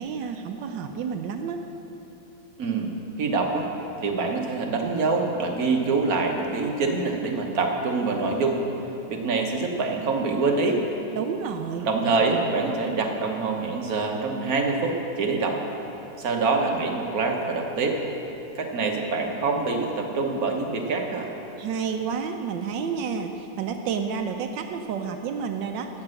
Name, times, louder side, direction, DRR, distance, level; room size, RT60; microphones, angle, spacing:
voice 1, 0.0-1.6 11.1-11.9 21.6-25.9, right 6 dB, 80° right, 6 dB, 1.3 m, -30 dB
voice 2, 2.6-2.9 3.2-3.7 4.0-8.6 9.1-10.8 11.8-15.6 16.2-18.0 18.5-21.3, right 3 dB, 55° right, 2 dB, 1.5 m, -25 dB
12.5 x 8.8 x 6.4 m, 3.0 s
omnidirectional pair, 2.0 m